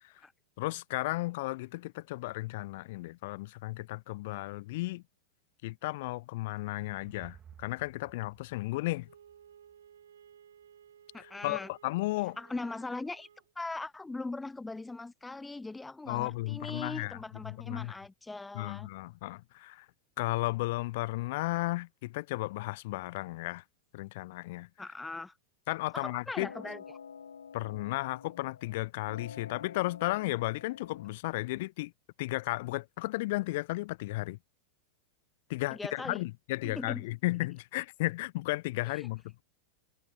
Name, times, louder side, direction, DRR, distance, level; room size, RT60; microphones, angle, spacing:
voice 1, 0.6-5.0 5.6-9.1 11.2-12.4 16.1-17.2 17.4-17.9 18.5-19.9 20.2-23.6 23.9-24.7 25.7-26.5 27.5-31.9 32.2-34.4 35.5-39.4, left 20 dB, 50° left, 0.6 m, -34 dB
sound 1, 6.2-9.7, right 9 dB, 25° right, 2.2 m, -57 dB
Wind instrument woodwind instrument, 9.0-13.5, right 9 dB, 65° right, 3.2 m, -58 dB
voice 2, 11.1-11.7 12.4-13.3 13.6-18.9 24.8-25.3 25.9-27.0 35.7-36.2 36.6-37.1 38.9-39.1, left 3 dB, 10° left, 0.3 m, -40 dB
sound 2, 26.4-28.8 29.1-31.1, left 6 dB, 70° left, 1.3 m, -49 dB
figure-of-eight pair, 90°, 0 cm